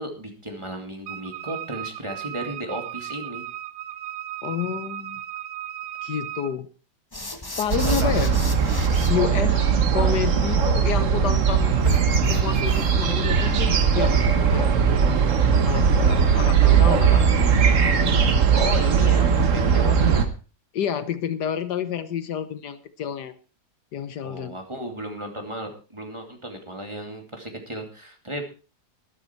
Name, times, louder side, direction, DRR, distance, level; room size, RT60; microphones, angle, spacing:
voice 1, 0.0-3.5 7.8-8.1 18.5-20.4 24.2-28.4, right 1 dB, 15° right, 3 dB, 2.5 m, -34 dB
Wind instrument woodwind instrument, 1.1-6.6, right 12 dB, 90° right, 1.5 m, -36 dB
voice 2, 4.4-5.2 6.0-6.7 7.6-8.4 9.1-11.8 12.3-14.8 15.6-17.3 20.7-23.3 23.9-24.5, left 8 dB, 75° left, 12 dB, 1.6 m, -29 dB
sound 1, 7.1-9.1 11.8-13.1, left 2 dB, 15° left, 1.1 m, -35 dB
sound 2, 7.7-20.3, right 6 dB, 50° right, 1.4 m, -19 dB
13.0 x 12.0 x 4.5 m, 0.33 s
omnidirectional pair, 1.8 m